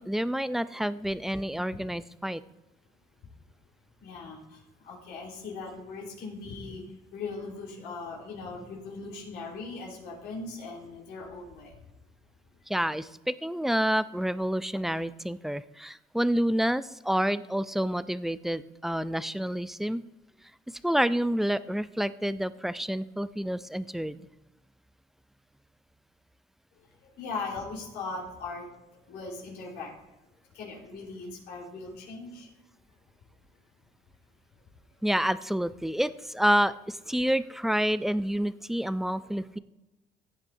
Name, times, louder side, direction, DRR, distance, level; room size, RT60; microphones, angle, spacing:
voice 1, 0.0-2.4 12.7-20.0 20.7-24.2 35.0-39.6, equal, ahead, 15 dB, 0.3 m, -28 dB
voice 2, 4.0-4.4 4.8-6.8 7.1-11.7 27.0-28.6 29.1-29.9 30.5-32.5, left 3 dB, 80° left, -3 dB, 4.0 m, -39 dB
15.5 x 9.0 x 2.7 m, 0.98 s
cardioid pair, 110°, 17 cm